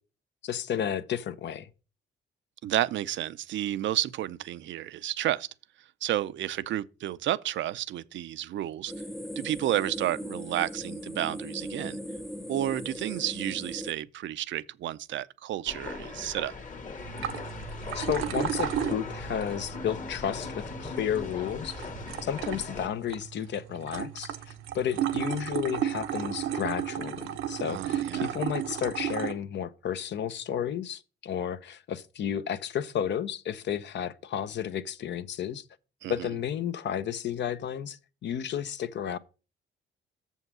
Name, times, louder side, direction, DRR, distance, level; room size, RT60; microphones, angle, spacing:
voice 1, 0.4-1.7 17.6-21.9 22.2-35.6 36.1-39.2, left 9 dB, 65° left, 0.8 m, -32 dB
voice 2, 2.6-5.5 6.0-8.9 9.4-12.0 12.5-16.5 27.7-28.3 36.0-36.3, right 13 dB, 70° right, 0.5 m, -31 dB
sound 1, 8.9-13.9, equal, ahead, 0.5 m, -38 dB
sound 2, 15.7-22.9, left 4 dB, 40° left, 1.5 m, -39 dB
sound 3, 17.0-29.3, right 10 dB, 90° right, 0.9 m, -34 dB
7.0 x 5.5 x 6.1 m
cardioid pair, 90°, 20 cm